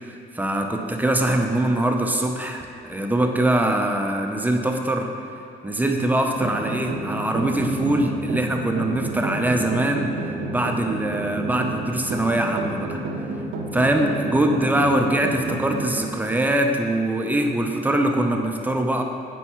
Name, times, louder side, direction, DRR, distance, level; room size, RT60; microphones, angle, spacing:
voice 1, 0.1-5.1 5.6-10.1 10.5-13.0 13.7-19.0, right 1 dB, 10° right, 3 dB, 0.7 m, -23 dB
sound 1, 6.3-16.0, right 2 dB, 85° right, 0.9 m, -30 dB
8.8 x 4.6 x 4.4 m, 2.5 s
cardioid pair, 90°, 20 cm